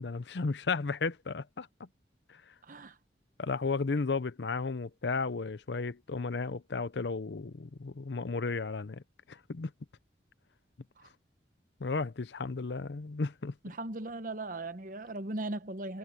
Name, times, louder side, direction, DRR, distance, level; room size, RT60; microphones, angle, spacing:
voice 1, 0.0-1.9 2.3-2.4 3.4-9.0 9.3-9.7 11.8-13.5, left 4 dB, 75° left, 0.7 m, -34 dB
voice 2, 13.6-16.0, right 2 dB, 50° right, 1.0 m, -38 dB
head